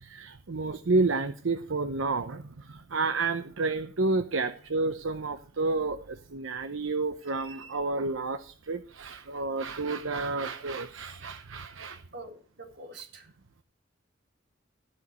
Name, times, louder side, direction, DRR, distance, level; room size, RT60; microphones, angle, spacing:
voice 1, 0.0-12.0, right 3 dB, 80° right, 9 dB, 0.8 m, -30 dB
voice 2, 12.1-13.3, right 2 dB, 60° right, 3 dB, 3.7 m, -45 dB
15.0 x 5.2 x 7.9 m, 0.43 s
head